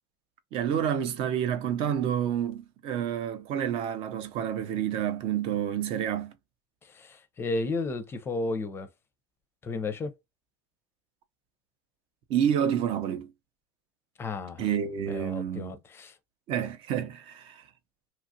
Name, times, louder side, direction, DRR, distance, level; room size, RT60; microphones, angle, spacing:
voice 1, 0.5-6.3 12.3-13.3 14.6-15.7 16.5-17.6, right 9 dB, 50° right, 0.6 m, -29 dB
voice 2, 6.8-8.9 9.6-10.1 14.2-14.7 15.1-16.2, left 3 dB, 20° left, 0.5 m, -33 dB
2.9 x 2.4 x 2.7 m
supercardioid pair, 120°, 12 cm